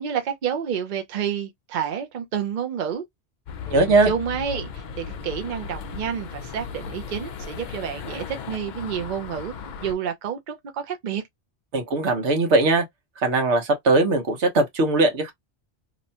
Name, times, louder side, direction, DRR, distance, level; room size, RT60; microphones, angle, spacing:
voice 1, 0.0-3.0 3.7-9.5 9.8-11.2, right 8 dB, 50° right, 0.7 m, -29 dB
sound 1, 3.5-9.9, left 6 dB, 55° left, 0.5 m, -36 dB
voice 2, 3.7-4.1 11.7-12.8 13.2-15.3, right 2 dB, 85° right, 1.2 m, -20 dB
2.9 x 2.2 x 2.6 m
omnidirectional pair, 1.1 m